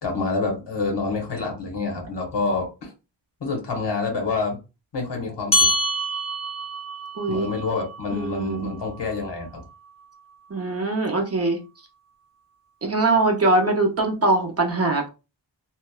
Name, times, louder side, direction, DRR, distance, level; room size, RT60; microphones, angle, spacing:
voice 1, 0.0-2.9 3.4-4.6 4.9-5.7 7.3-9.6, left 3 dB, 65° left, 1 dB, 1.0 m, -27 dB
sound 1, 5.5-10.3, left 1 dB, 15° left, 0.7 m, -28 dB
voice 2, 7.2-7.5 8.1-8.7 10.5-11.6 12.8-15.1, right 2 dB, 35° right, 1 dB, 0.5 m, -22 dB
2.8 x 2.1 x 2.2 m, 0.29 s
wide cardioid pair, 125°, 46 cm